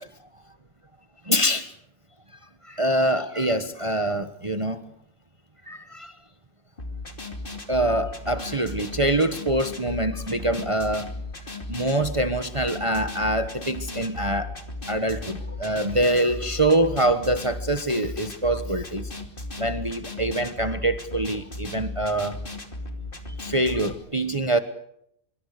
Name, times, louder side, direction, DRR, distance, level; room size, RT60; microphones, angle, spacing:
voice 1, 1.3-1.7 2.6-4.8 5.7-6.1 7.7-11.1 11.7-14.5 14.9-19.1 19.6-22.4 23.4-24.6, right 1 dB, 25° right, 9 dB, 1.3 m, -24 dB
sound 1, 6.8-23.9, left 2 dB, 40° left, 3.1 m, -36 dB
25.5 x 24.5 x 6.7 m, 0.74 s
omnidirectional pair, 1.5 m